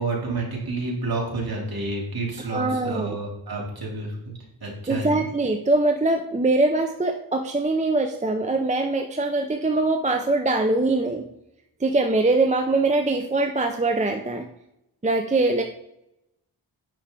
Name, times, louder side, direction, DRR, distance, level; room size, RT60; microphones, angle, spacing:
voice 1, 0.0-4.3 4.6-5.2, right 2 dB, 50° right, -3 dB, 3.0 m, -29 dB
voice 2, 2.4-3.2 4.9-11.2 11.8-14.5 15.0-15.6, right 2 dB, 15° right, 4 dB, 0.6 m, -22 dB
9.0 x 5.9 x 3.8 m, 0.81 s
wide cardioid pair, 110°, 46 cm